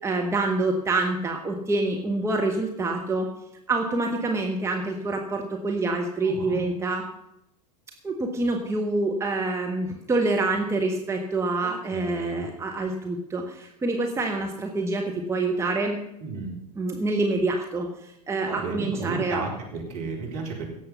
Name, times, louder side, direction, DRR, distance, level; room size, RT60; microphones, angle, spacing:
voice 1, 0.0-3.3 3.7-7.0 8.0-16.0 16.8-19.4, right 2 dB, 15° right, 1 dB, 1.6 m, -26 dB
voice 2, 6.2-6.6 11.6-12.5 16.2-16.5 18.4-20.6, right 4 dB, 55° right, 0 dB, 4.1 m, -33 dB
17.0 x 7.7 x 5.6 m, 0.84 s
figure-of-eight pair, 80°, 21 cm